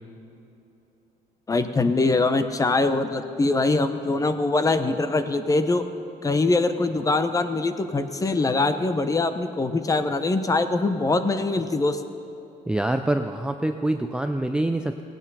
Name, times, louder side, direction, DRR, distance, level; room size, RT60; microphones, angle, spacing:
voice 1, 1.5-5.8 6.2-12.0, left 3 dB, 20° left, 10 dB, 0.8 m, -23 dB
voice 2, 12.7-15.0, right 1 dB, 5° right, 6 dB, 0.4 m, -25 dB
17.0 x 9.0 x 5.6 m, 2.9 s
cardioid pair, 110°, 17 cm